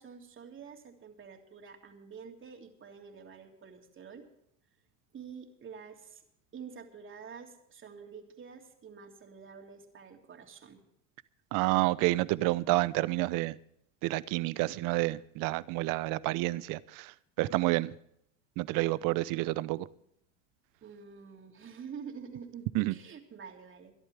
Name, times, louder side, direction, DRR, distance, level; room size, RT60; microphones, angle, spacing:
voice 1, 0.0-4.3 5.1-6.2 6.5-10.8 20.8-23.9, right 6 dB, 30° right, 3 dB, 3.1 m, -48 dB
voice 2, 11.5-13.6 14.0-17.9 18.6-19.9 22.7-22.9, right 19 dB, 55° right, 19 dB, 0.8 m, -29 dB
23.0 x 11.5 x 3.4 m, 0.74 s
hypercardioid pair, 95°, 38 cm